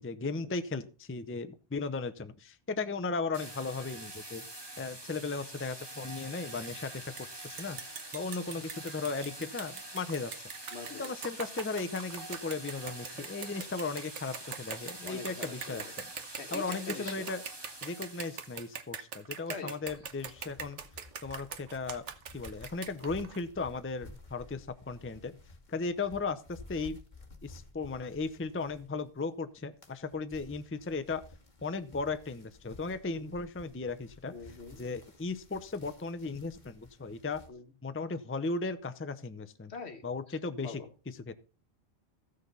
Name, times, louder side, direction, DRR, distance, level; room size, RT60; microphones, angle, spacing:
voice 1, 0.0-7.1 7.4-10.3 10.9-16.1 16.5-17.4 17.8-20.8 21.2-22.0 22.3-25.4 25.7-27.0 27.4-31.2 31.6-34.3 34.8-37.4 37.8-39.7 40.0-40.8 41.3-41.4, left 4 dB, 15° left, 0.6 m, -36 dB
sound 1, 3.3-18.8, right 1 dB, 20° right, 1.9 m, -46 dB
sound 2, 7.2-7.3 7.6-23.4, right 7 dB, 85° right, 1.4 m, -42 dB
voice 2, 10.7-11.3 15.0-15.9 16.4-17.3 19.5-19.8 34.3-34.8 37.5-37.7 39.7-40.9, left 4 dB, 65° left, 1.6 m, -44 dB
sound 3, 19.9-29.2 29.6-37.5, left 2 dB, 40° left, 2.0 m, -54 dB
15.0 x 6.6 x 5.4 m
omnidirectional pair, 1.2 m